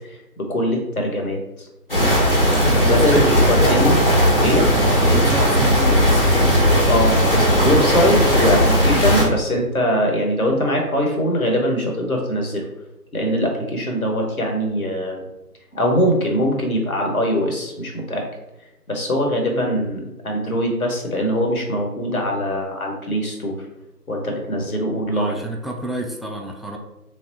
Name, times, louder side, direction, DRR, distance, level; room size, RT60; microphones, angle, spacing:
voice 1, 0.1-1.7 2.9-4.0 4.4-4.7 6.9-12.6 13.1-15.2 15.7-18.2 18.9-23.6 24.1-25.4, equal, 60° left, 1 dB, 1.0 m, -22 dB
sound 1, 1.9-9.2, equal, 35° left, 0.8 m, -16 dB
voice 2, 2.7-3.2 5.0-6.2 25.1-26.8, right 1 dB, ahead, 1 dB, 0.3 m, -29 dB
3.3 x 2.4 x 3.9 m, 0.93 s
figure-of-eight pair, 170°, 48 cm